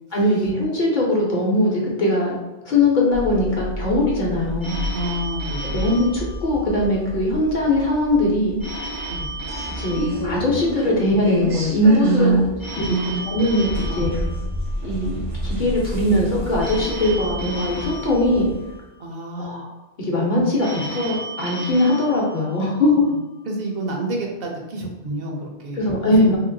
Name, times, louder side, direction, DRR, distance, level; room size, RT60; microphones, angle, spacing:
voice 1, 0.1-2.4 2.6-4.8 5.6-8.6 9.8-12.3 12.8-12.9 13.2-14.2 14.8-18.5 19.4-23.0 25.8-26.4, left 1 dB, 50° left, -3 dB, 0.8 m, -20 dB
sound 1, 3.1-18.8, equal, 45° right, 0.4 m, -30 dB
Telephone, 4.6-7.1 8.6-11.1 12.6-15.1 16.6-19.1 20.6-23.1, right 1 dB, 25° left, 0.5 m, -34 dB
voice 2, 4.9-5.8 12.0-12.5 12.9-13.2 13.9-14.1 19.0-19.6 22.9-23.1 23.5-25.9 26.2-26.4, right 3 dB, 65° right, 1 dB, 0.8 m, -26 dB
3.0 x 2.8 x 2.5 m, 1.1 s
omnidirectional pair, 1.1 m